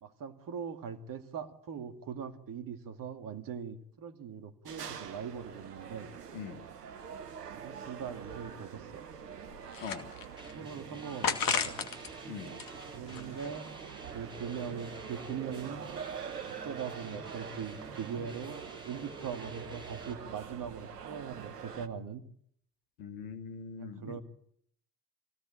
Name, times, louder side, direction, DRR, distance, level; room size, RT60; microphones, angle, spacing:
voice 1, 0.0-6.1 7.5-9.0 10.5-11.8 12.9-13.7 14.1-15.9 16.5-22.2 23.8-24.2, right 7 dB, 45° right, 9 dB, 2.5 m, -41 dB
sound 1, 4.7-21.9, right 7 dB, 80° right, 1.3 m, -45 dB
voice 2, 6.3-6.7 9.8-10.1 12.3-12.6 23.0-24.2, left 6 dB, 70° left, 5 dB, 2.9 m, -42 dB
sound 2, 9.2-10.5 11.2-12.1 12.5-13.7, left 7 dB, 45° left, 2.5 m, -34 dB
sound 3, 10.4-20.1, right 2 dB, 10° right, 4.1 m, -51 dB
24.5 x 17.0 x 8.9 m, 0.68 s
figure-of-eight pair, 50°, 47 cm